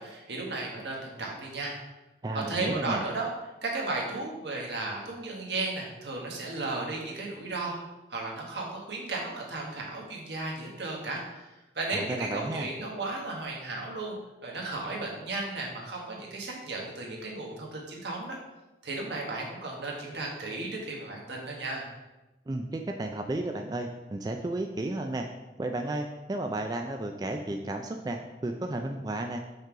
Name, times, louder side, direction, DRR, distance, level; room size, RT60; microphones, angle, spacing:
voice 1, 0.0-1.7 2.5-3.3 3.6-7.8 8.1-11.5 11.7-14.2 14.4-18.4 18.8-21.9, right 2 dB, 80° right, -2 dB, 1.5 m, -34 dB
voice 2, 2.2-3.0 11.9-12.7 22.5-25.3 25.6-29.4, right 2 dB, 20° right, 4 dB, 0.3 m, -33 dB
5.3 x 3.8 x 4.9 m, 1.0 s
head